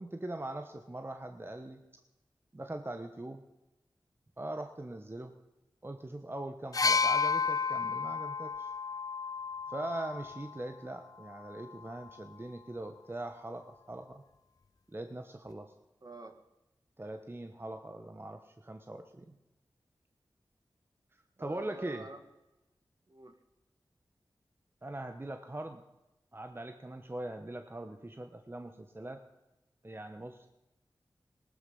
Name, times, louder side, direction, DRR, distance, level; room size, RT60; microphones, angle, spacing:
voice 1, 0.0-1.8 2.5-3.4 4.4-5.3 5.8-8.7 9.7-14.2 14.9-15.7 17.0-19.3 21.4-22.1 24.8-25.8 26.3-29.2 29.8-30.5, right 1 dB, 25° right, 6 dB, 1.2 m, -41 dB
sound 1, 6.7-10.5 11.6-11.7, left 5 dB, 45° left, 0.4 m, -31 dB
voice 2, 16.0-16.4 21.4-22.3 23.1-23.4, right 3 dB, 50° right, 6 dB, 1.9 m, -47 dB
19.0 x 13.0 x 5.6 m, 0.97 s
wide cardioid pair, 55°, 9 cm